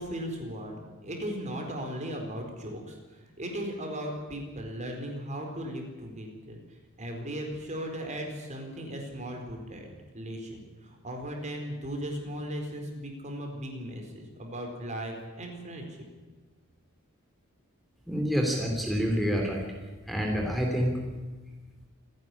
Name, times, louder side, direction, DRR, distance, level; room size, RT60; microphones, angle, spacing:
voice 1, 0.0-6.6 7.0-9.9 10.1-15.8, equal, 35° right, 3 dB, 4.4 m, -37 dB
voice 2, 18.1-19.6 20.1-20.9, equal, ahead, 0 dB, 3.1 m, -27 dB
27.5 x 11.0 x 9.9 m, 1.3 s
head